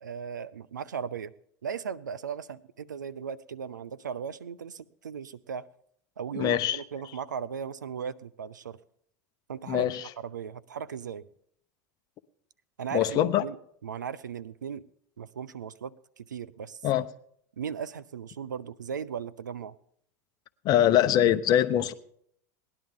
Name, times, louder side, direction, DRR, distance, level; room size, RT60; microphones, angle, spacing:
voice 1, 0.0-1.3 1.6-5.7 6.2-8.8 9.5-9.9 10.2-11.3 12.8-14.8 15.2-16.8 17.6-19.8, right 7 dB, 90° right, 0.5 m, -37 dB
voice 2, 6.4-6.8 9.7-10.0 12.9-13.4 16.8-17.0 20.6-21.9, left 11 dB, 45° left, 0.8 m, -23 dB
18.5 x 10.5 x 3.7 m
hypercardioid pair, 90°, 10 cm